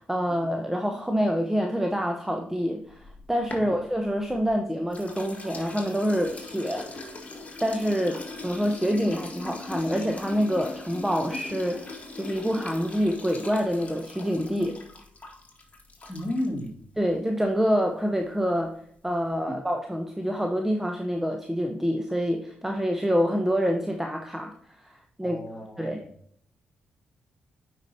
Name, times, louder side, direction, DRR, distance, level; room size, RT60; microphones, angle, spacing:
voice 1, 0.0-7.1 7.6-14.8 17.0-18.7 19.0-24.9 25.2-25.4 25.8-26.0, equal, 10° right, 3 dB, 0.9 m, -27 dB
sound 1, 2.9-4.5 4.9-16.7, left 3 dB, 35° left, 1.9 m, -40 dB
voice 2, 16.1-16.8 19.5-19.6 25.2-26.1, left 1 dB, 10° left, -1 dB, 2.4 m, -33 dB
9.1 x 4.9 x 2.8 m, 0.65 s
hypercardioid pair, 40°, 4 cm